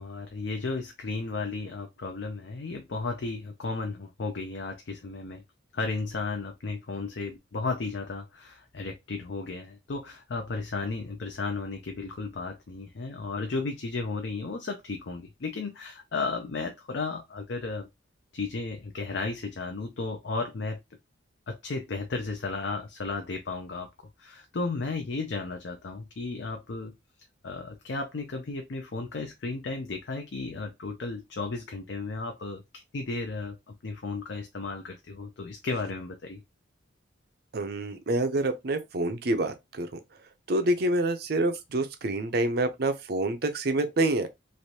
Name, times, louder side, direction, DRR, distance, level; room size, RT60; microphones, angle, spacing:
voice 1, 0.0-5.4 5.7-17.9 18.3-20.8 21.5-23.9 24.2-26.9 27.4-32.6 32.9-36.4, left 3 dB, 65° left, 0.5 m, -34 dB
voice 2, 37.5-39.9 40.5-44.3, right 2 dB, 50° right, 0.5 m, -27 dB
3.2 x 2.5 x 2.8 m
head